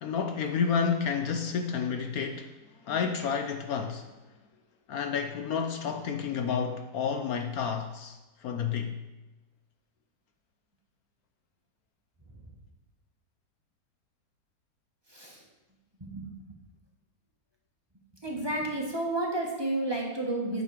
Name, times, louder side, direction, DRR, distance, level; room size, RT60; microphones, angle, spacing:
voice 1, 0.0-2.5 2.8-4.1 4.9-9.0, left 6 dB, 65° left, 1.0 m, -30 dB
voice 2, 16.0-16.3 18.2-20.6, right 2 dB, 15° right, 1.3 m, -31 dB
8.8 x 6.7 x 4.9 m
omnidirectional pair, 1.9 m